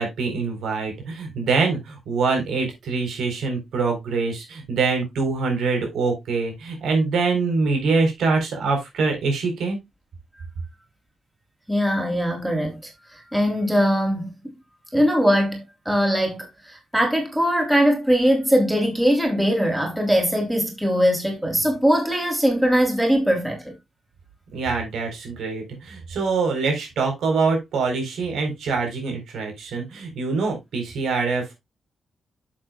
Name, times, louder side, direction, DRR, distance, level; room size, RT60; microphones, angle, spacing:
voice 1, 0.0-9.8 24.5-31.5, right 4 dB, 90° right, 4.1 m, -24 dB
voice 2, 11.7-12.8 13.1-14.3 14.9-23.7, equal, 5° right, 3.3 m, -21 dB
10.5 x 7.4 x 2.3 m
wide cardioid pair, 135°, 0 cm